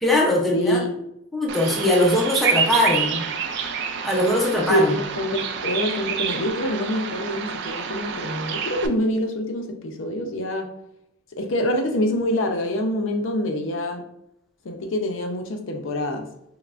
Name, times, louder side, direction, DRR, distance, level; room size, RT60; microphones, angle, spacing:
voice 1, 0.0-0.8 1.3-3.2 4.0-5.0, left 1 dB, ahead, -3 dB, 0.6 m, -21 dB
voice 2, 0.5-0.9 4.7-4.9 5.2-10.7 11.3-14.0 14.6-16.3, left 1 dB, 65° left, 4 dB, 0.5 m, -25 dB
Bird vocalization bird call bird song, 1.5-8.9, right 6 dB, 60° right, 0.3 m, -28 dB
5.4 x 2.1 x 2.5 m, 0.78 s
head